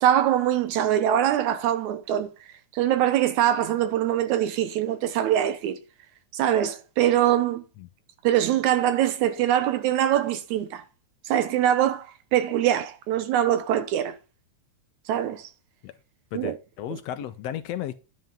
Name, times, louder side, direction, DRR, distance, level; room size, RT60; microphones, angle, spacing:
voice 1, 0.0-2.3 2.7-5.8 6.3-7.6 8.2-10.8 11.3-14.2 15.1-15.5 16.3-16.6 16.9-17.0, right 11 dB, 80° right, 2.1 m, -23 dB
voice 2, 16.3-17.9, left 11 dB, 80° left, 1.5 m, -34 dB
10.5 x 5.6 x 5.3 m
omnidirectional pair, 3.5 m